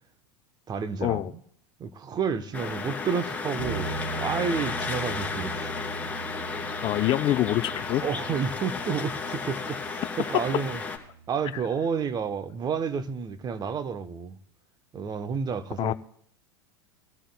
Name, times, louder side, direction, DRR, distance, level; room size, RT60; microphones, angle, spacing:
voice 1, 0.7-1.2 1.8-5.7 8.0-10.8 11.3-14.4 14.9-15.9, right 6 dB, 30° right, 0.9 m, -30 dB
sound 1, 2.5-11.0, left 4 dB, 10° left, 2.6 m, -33 dB
sound 2, 3.6-13.1, right 4 dB, 70° right, 6.8 m, -41 dB
voice 2, 6.8-8.0 15.8-15.9, left 14 dB, 35° left, 0.5 m, -25 dB
23.0 x 14.0 x 2.2 m
hypercardioid pair, 95°, 14 cm